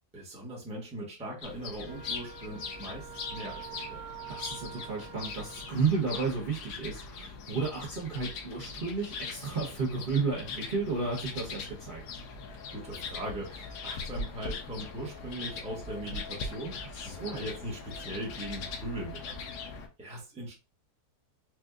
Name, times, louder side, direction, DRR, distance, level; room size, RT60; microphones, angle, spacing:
voice 1, 0.1-4.0 12.7-20.5, right 1 dB, 5° right, -3 dB, 0.8 m, -40 dB
sound 1, 1.4-19.9, left 4 dB, 85° left, 1.3 m, -41 dB
Wind instrument woodwind instrument, 1.9-6.0, right 10 dB, 65° right, 0.9 m, -46 dB
voice 2, 4.3-12.0 16.9-17.4, right 4 dB, 40° right, -3 dB, 0.9 m, -32 dB
4.3 x 2.4 x 2.4 m, 0.30 s
omnidirectional pair, 1.7 m